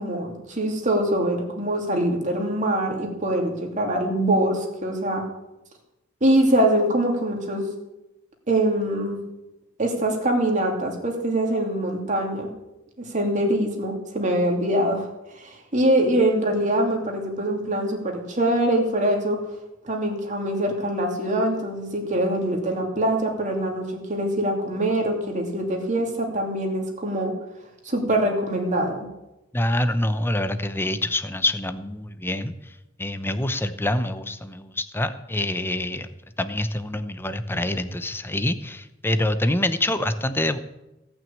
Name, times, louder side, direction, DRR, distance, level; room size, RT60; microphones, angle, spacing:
voice 1, 0.0-5.2 6.2-7.7 8.5-9.2 9.8-12.5 13.0-15.1 15.4-19.4 19.8-27.3 27.8-29.0, right 1 dB, 40° right, 2 dB, 2.8 m, -23 dB
voice 2, 29.5-36.1 36.4-40.6, left 1 dB, 10° left, 11 dB, 0.8 m, -26 dB
17.5 x 6.2 x 8.6 m, 0.95 s
head